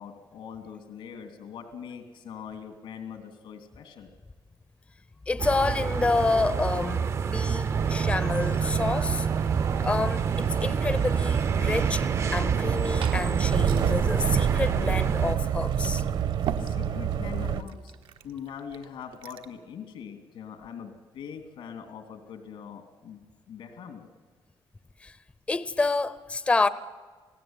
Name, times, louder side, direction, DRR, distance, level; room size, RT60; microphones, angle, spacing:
voice 1, 0.0-4.1 16.5-23.2 23.5-24.1, left 7 dB, 85° left, 2.9 m, -42 dB
voice 2, 5.3-9.3 9.8-12.1 12.3-16.0 25.0-25.1 25.5-26.7, left 3 dB, 15° left, 0.6 m, -28 dB
sound 1, 5.4-15.3, right 6 dB, 35° right, 0.6 m, -29 dB
sound 2, 7.7-17.6, right 8 dB, 60° right, 1.2 m, -28 dB
Glass / Fill (with liquid), 12.5-19.6, right 9 dB, 85° right, 1.4 m, -43 dB
28.0 x 17.5 x 9.0 m
cardioid pair, 175°, 9 cm